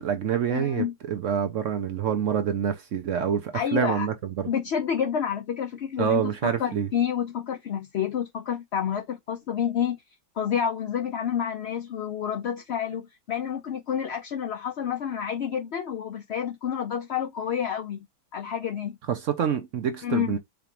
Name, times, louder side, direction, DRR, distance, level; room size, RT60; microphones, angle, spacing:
voice 1, 0.0-4.5 6.0-6.9 19.1-20.4, right 8 dB, 60° right, 0.9 m, -27 dB
voice 2, 0.5-0.9 3.5-4.1 4.4-10.0 10.4-13.0 13.3-18.1 18.3-19.0 20.0-20.4, left 8 dB, 60° left, 0.7 m, -29 dB
5.0 x 3.5 x 2.9 m
omnidirectional pair, 1.8 m